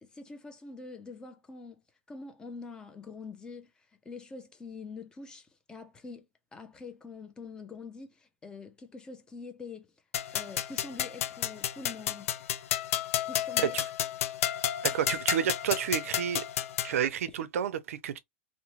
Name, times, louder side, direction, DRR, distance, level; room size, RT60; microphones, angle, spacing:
voice 1, 0.0-1.8 2.1-6.3 6.5-9.9 10.3-12.3 13.2-13.8, left 4 dB, 10° left, 0.4 m, -45 dB
sound 1, 10.1-17.0, left 11 dB, 85° left, 0.4 m, -32 dB
voice 2, 14.8-16.5 16.8-18.2, right 9 dB, 90° right, 0.5 m, -30 dB
2.9 x 2.1 x 2.8 m
supercardioid pair, 155°, 7 cm